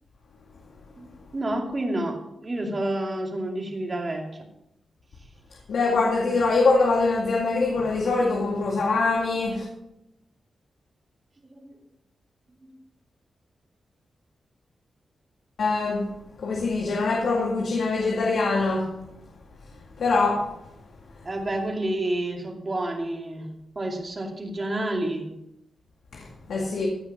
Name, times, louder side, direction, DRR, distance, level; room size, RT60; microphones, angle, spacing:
voice 1, 1.0-4.3 11.5-11.7 12.6-12.7 21.2-23.5 23.8-25.3, right 1 dB, 30° right, 1 dB, 2.6 m, -29 dB
voice 2, 5.7-9.6 15.6-16.1 16.4-18.9 20.0-20.5 26.1-26.9, left 3 dB, 80° left, -1 dB, 2.1 m, -23 dB
15.5 x 6.4 x 5.9 m, 0.83 s
wide cardioid pair, 105°, 0 cm